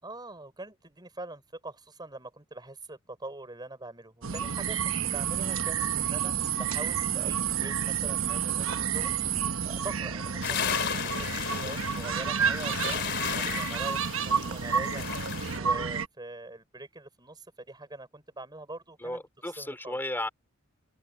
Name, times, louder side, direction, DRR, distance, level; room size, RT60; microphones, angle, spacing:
voice 1, 0.0-9.1 9.7-15.0 15.5-19.3 19.6-20.0, right 2 dB, 20° right, 5.8 m, -43 dB
sound 1, 4.2-16.1, right 7 dB, 75° right, 1.1 m, -30 dB
sound 2, 10.4-15.6, left 8 dB, 55° left, 3.0 m, -34 dB
voice 2, 19.0-20.3, left 1 dB, 10° left, 4.3 m, -35 dB
open air
head